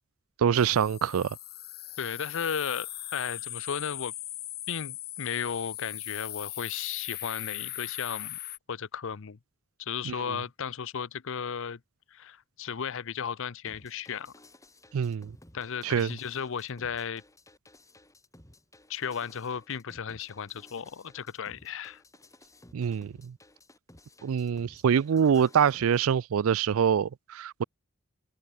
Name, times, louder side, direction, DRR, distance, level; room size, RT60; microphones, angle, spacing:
voice 1, 0.4-1.4 10.0-10.4 14.9-15.3 15.8-16.1 22.7-23.3 24.2-27.6, right 7 dB, 75° right, 0.4 m, -25 dB
sound 1, 0.5-8.6, left 15 dB, 50° left, 2.0 m, -39 dB
voice 2, 2.0-4.1 4.7-8.4 8.7-9.4 9.8-11.8 12.1-14.3 15.5-17.2 18.9-22.0, left 7 dB, 70° left, 0.6 m, -35 dB
sound 2, 13.7-26.0, left 1 dB, 15° left, 4.7 m, -56 dB
head